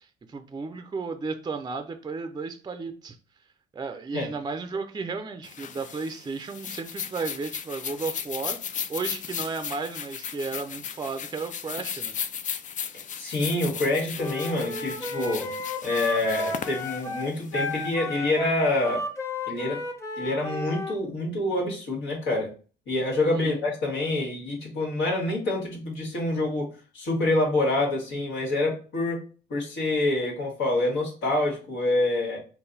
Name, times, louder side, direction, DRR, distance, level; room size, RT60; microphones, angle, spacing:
voice 1, 0.0-3.2 3.7-8.6 8.9-12.1 23.3-23.6, right 4 dB, 20° right, 8 dB, 0.5 m, -34 dB
sound 1, 5.4-17.9, left 8 dB, 40° left, 0.4 m, -36 dB
voice 2, 13.1-15.5 15.8-19.0 19.5-19.8 20.2-22.5 22.9-26.7 26.9-29.2 29.5-32.4, left 2 dB, 85° left, -2 dB, 1.6 m, -26 dB
Wind instrument woodwind instrument, 14.2-21.0, left 1 dB, 15° left, 0.8 m, -33 dB
3.9 x 2.2 x 3.9 m, 0.37 s
cardioid pair, 90°, 20 cm